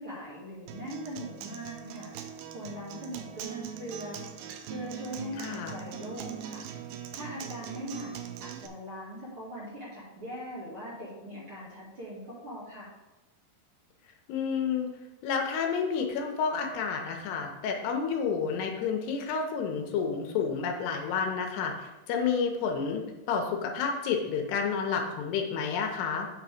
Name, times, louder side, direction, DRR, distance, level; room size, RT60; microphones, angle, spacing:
voice 1, 0.0-4.2 4.6-6.7 7.1-12.9, equal, 40° right, -8 dB, 2.6 m, -41 dB
Acoustic guitar, 0.7-8.7, right 8 dB, 80° right, 2.5 m, -41 dB
voice 2, 5.4-5.7 14.3-14.9 15.2-26.3, left 6 dB, 80° left, 3 dB, 2.8 m, -30 dB
8.8 x 3.9 x 4.9 m, 1.0 s
omnidirectional pair, 4.7 m